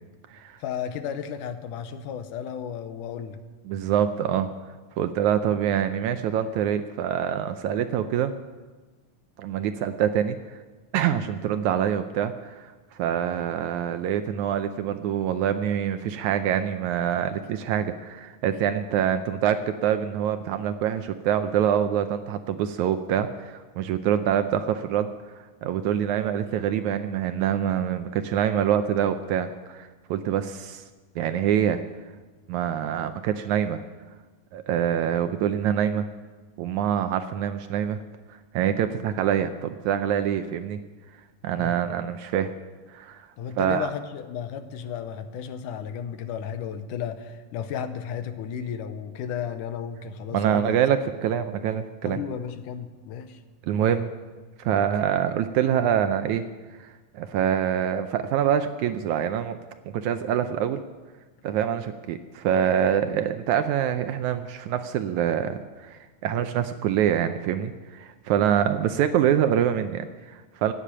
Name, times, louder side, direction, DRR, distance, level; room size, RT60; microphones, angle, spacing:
voice 1, 0.6-3.4 41.6-41.8 43.4-50.8 52.0-53.4 54.7-54.9 68.6-68.7, left 8 dB, 80° left, 9 dB, 2.3 m, -34 dB
voice 2, 3.7-4.5 5.0-8.3 9.4-10.4 10.9-12.7 13.0-25.1 25.6-30.8 31.2-31.8 32.5-33.8 34.5-36.1 36.6-38.0 38.5-40.8 41.4-42.5 42.9-43.3 43.6-43.9 50.3-52.2 53.7-54.1 54.6-56.4 56.8-59.6 59.9-60.8 61.4-70.7, right 9 dB, 75° right, 9 dB, 1.8 m, -25 dB
16.5 x 8.4 x 10.0 m, 1.3 s
omnidirectional pair, 3.8 m